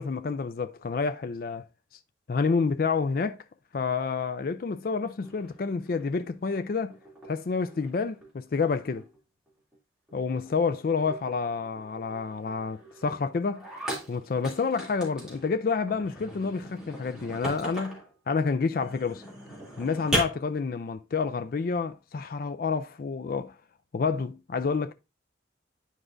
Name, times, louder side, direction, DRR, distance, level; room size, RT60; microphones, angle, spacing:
voice 1, 0.0-1.7 2.3-3.4 3.7-7.0 7.3-9.0 10.1-13.7 14.1-18.0 18.3-19.2 19.8-23.5 23.9-24.9, left 5 dB, 50° left, 0.4 m, -29 dB
sound 1, 5.2-6.6 6.9-8.3 8.6-9.2 9.5-9.8 10.1-10.2 10.5-10.6 10.9-15.5 15.9-18.1 18.7-20.2, equal, 5° right, 2.6 m, -38 dB
9.8 x 4.9 x 2.5 m
head